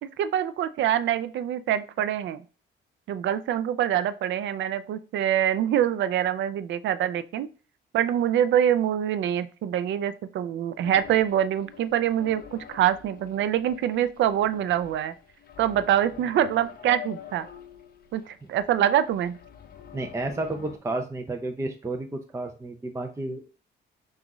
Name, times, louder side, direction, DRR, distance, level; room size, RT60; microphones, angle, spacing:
voice 1, 0.0-2.4 3.1-7.5 7.9-15.1 15.6-17.5 18.1-19.4, right 10 dB, 70° right, 13 dB, 0.4 m, -25 dB
sound 1, 10.8-20.8, left 10 dB, 50° left, 0.6 m, -46 dB
voice 2, 19.9-23.5, right 2 dB, 15° right, 5 dB, 0.5 m, -31 dB
6.0 x 2.4 x 3.0 m, 0.37 s
cardioid pair, 90°, 20 cm